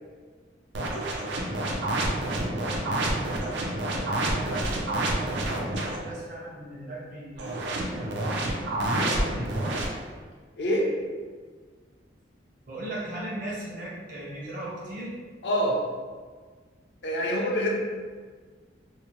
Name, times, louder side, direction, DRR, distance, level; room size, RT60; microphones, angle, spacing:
sound 1, 0.7-6.0 7.4-9.9, right 1 dB, 75° right, 0.4 m, -28 dB
voice 1, 2.3-5.3 5.8-9.6 12.7-15.1, right 1 dB, 45° right, -6 dB, 0.7 m, -39 dB
voice 2, 10.6-10.9 15.4-15.8 17.0-17.7, equal, 70° left, -1 dB, 0.5 m, -25 dB
2.7 x 2.0 x 2.9 m, 1.5 s
head